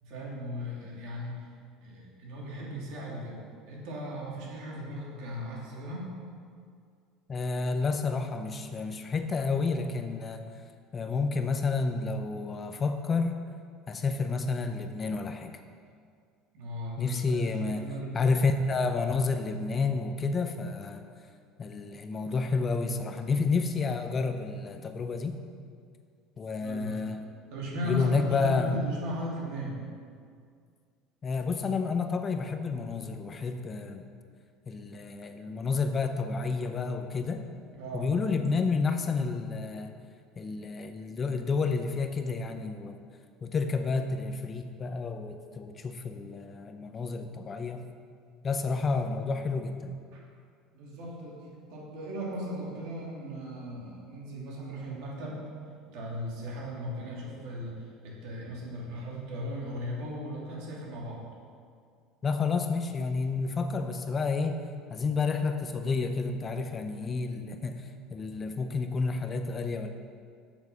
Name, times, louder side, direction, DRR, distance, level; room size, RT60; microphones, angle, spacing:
voice 1, 0.0-1.5 1.8-6.1 16.5-17.4 17.7-18.3 26.6-27.1 27.5-29.7 37.7-38.1 40.6-40.7 50.1-50.2 50.7-55.4 55.9-57.8 58.0-61.2, equal, 70° right, -3 dB, 2.7 m, -37 dB
voice 2, 7.3-10.4 10.9-13.3 13.9-15.5 17.0-17.9 18.1-21.0 21.6-25.3 26.4-27.2 27.8-28.8 31.2-34.1 34.7-37.4 37.9-39.9 40.4-43.0 43.4-47.8 48.4-49.9 62.2-64.6 64.9-69.9, left 4 dB, 25° left, 7 dB, 0.5 m, -30 dB
7.9 x 7.2 x 5.7 m, 2.2 s
cardioid pair, 145°, 0 cm